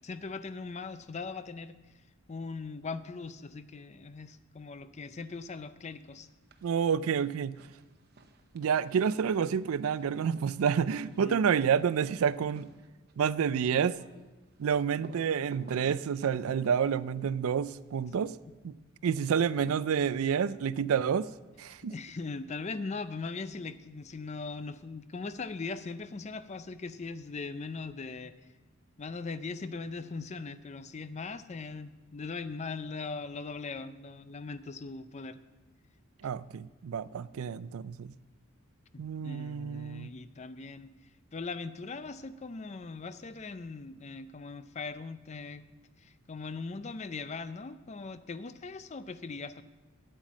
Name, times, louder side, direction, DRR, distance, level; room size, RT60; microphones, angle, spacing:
voice 1, 0.0-1.8 2.3-6.3 11.2-11.4 18.1-18.3 21.8-28.3 29.0-35.4 38.9-40.9 41.3-45.7 46.0-49.6, left 4 dB, 30° left, 13 dB, 0.4 m, -40 dB
sound 1, 6.2-6.7 7.0-18.0 19.3-20.5, right 2 dB, 45° right, 0.8 m, -55 dB
voice 2, 6.6-7.5 8.5-12.7 13.2-14.0 14.6-18.3 18.6-18.7 19.0-21.3 21.6-21.9 36.2-38.1 39.0-40.1, right 7 dB, 75° right, 18 dB, 0.4 m, -29 dB
9.1 x 8.9 x 7.2 m, 1.2 s
head